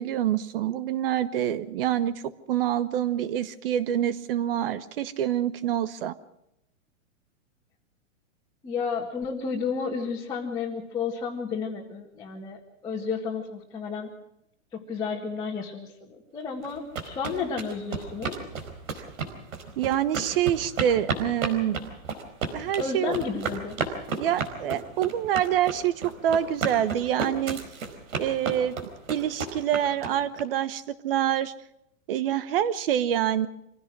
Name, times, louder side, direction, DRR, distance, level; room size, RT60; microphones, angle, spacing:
voice 1, 0.0-6.1 19.8-21.9 22.5-23.2 24.1-27.6 28.2-28.8 29.1-31.5 32.1-33.5, right 11 dB, 45° right, 16 dB, 1.1 m, -26 dB
voice 2, 8.6-14.1 14.7-18.3 22.8-23.8, left 5 dB, 10° left, -5 dB, 1.8 m, -32 dB
sound 1, 16.6-30.4, right 5 dB, 85° right, 4.7 m, -33 dB
25.5 x 16.5 x 6.2 m, 0.81 s
hypercardioid pair, 165°, 39 cm